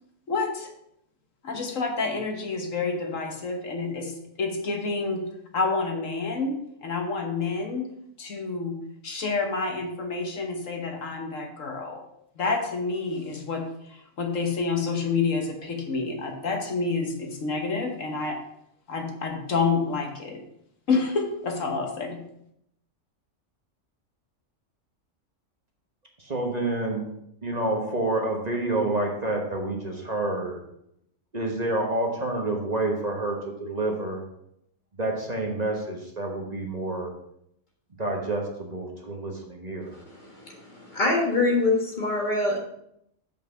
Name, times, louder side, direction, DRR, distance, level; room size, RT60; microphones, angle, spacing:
voice 1, 0.3-0.7 1.4-5.2 5.5-7.9 8.2-12.0 12.4-18.4 18.9-20.4 20.9-22.2, left 4 dB, 75° left, 3 dB, 1.6 m, -28 dB
voice 2, 26.2-27.0 27.4-30.6 31.3-34.2 35.0-37.1 38.0-40.0, right 2 dB, 35° right, 1 dB, 1.3 m, -28 dB
voice 3, 39.9-42.6, left 2 dB, 35° left, 0 dB, 1.7 m, -25 dB
7.5 x 5.5 x 5.6 m, 0.76 s
omnidirectional pair, 1.3 m